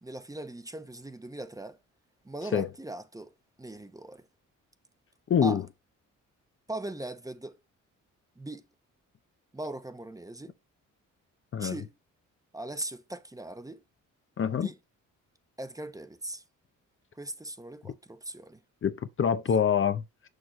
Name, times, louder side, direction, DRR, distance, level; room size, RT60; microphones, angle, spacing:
voice 1, 0.0-1.8 2.2-4.2 5.4-5.6 6.7-7.6 8.4-8.7 9.5-10.5 11.6-11.9 12.5-13.8 14.5-14.8 15.6-16.4 17.2-18.6, right 1 dB, 10° right, 0.9 m, -39 dB
voice 2, 5.3-5.6 11.5-11.8 14.4-14.7 18.8-20.3, left 7 dB, 40° left, 0.6 m, -26 dB
6.5 x 6.5 x 3.0 m
cardioid pair, 90°, 31 cm